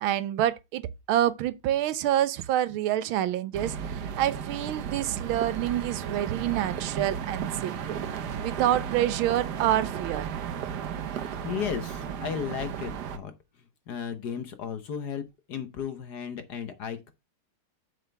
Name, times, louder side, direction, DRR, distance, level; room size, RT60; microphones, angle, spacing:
voice 1, 0.0-8.0 8.4-10.3, right 12 dB, 75° right, 1.4 m, -27 dB
sound 1, 3.5-13.2, right 8 dB, 60° right, 1.3 m, -34 dB
voice 2, 11.1-13.3 13.9-15.2 15.5-17.1, left 7 dB, 60° left, 1.3 m, -34 dB
8.0 x 6.9 x 3.3 m
omnidirectional pair, 2.3 m